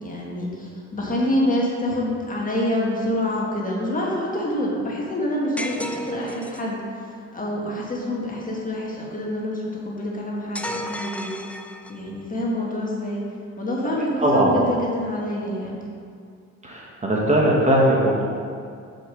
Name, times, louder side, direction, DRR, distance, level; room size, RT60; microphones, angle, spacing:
voice 1, 0.0-6.8 7.3-11.3 11.9-13.2 13.6-15.8, left 1 dB, 25° left, -4 dB, 1.7 m, -26 dB
sound 1, 5.6-6.7 10.5-12.1, equal, 5° left, 0.4 m, -33 dB
voice 2, 14.2-14.5 16.6-18.2, right 1 dB, 25° right, -3 dB, 1.2 m, -19 dB
5.4 x 5.0 x 6.3 m, 2.3 s
cardioid pair, 90°, 30 cm